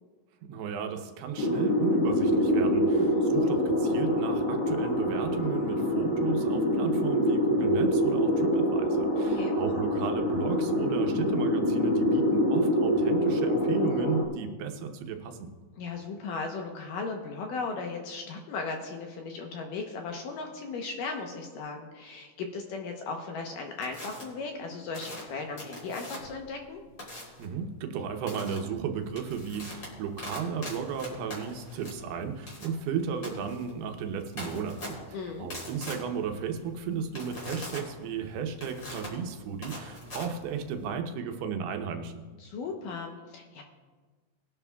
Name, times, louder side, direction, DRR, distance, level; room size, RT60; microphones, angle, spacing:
voice 1, 0.4-15.5 27.4-35.0 35.4-42.2, right 6 dB, 80° right, 5 dB, 2.8 m, -34 dB
sound 1, 1.4-14.3, equal, 90° left, 3.5 m, -25 dB
voice 2, 2.9-3.2 9.1-9.6 15.8-26.8 35.1-35.5 42.4-43.6, left 4 dB, 70° left, 2 dB, 2.2 m, -37 dB
sound 2, 23.8-24.2 24.9-26.4 27.0-27.4 28.3-28.6 29.0-40.9, left 1 dB, 30° left, 3.6 m, -42 dB
21.0 x 11.0 x 2.3 m, 1.4 s
omnidirectional pair, 4.6 m